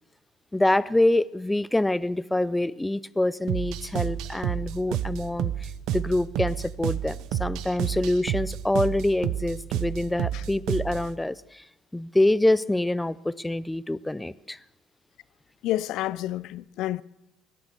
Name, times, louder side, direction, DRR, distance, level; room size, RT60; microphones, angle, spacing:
voice 1, 0.5-11.6 11.9-14.6, left 1 dB, 10° left, 0.5 m, -26 dB
sound 1, 3.5-11.1, right 11 dB, 70° right, 0.8 m, -30 dB
voice 2, 15.6-17.0, left 14 dB, 65° left, 0.5 m, -29 dB
18.5 x 11.5 x 6.7 m
cardioid pair, 110°, 0 cm